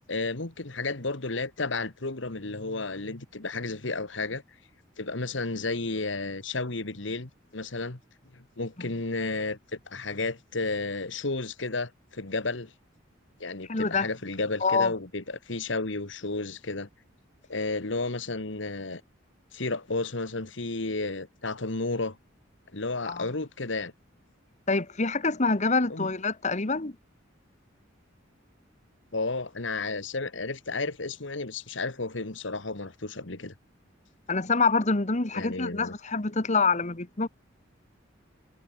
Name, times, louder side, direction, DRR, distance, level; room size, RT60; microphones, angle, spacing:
voice 1, 0.1-4.4 5.0-8.0 8.3-12.7 13.4-16.9 17.5-19.0 19.5-22.2 22.7-23.9 25.9-26.1 29.1-33.5 35.3-35.9, left 3 dB, 65° left, 1.8 m, -32 dB
voice 2, 13.7-14.1 14.6-14.9 23.1-23.2 24.7-26.9 34.3-37.3, left 4 dB, 35° left, 1.4 m, -26 dB
head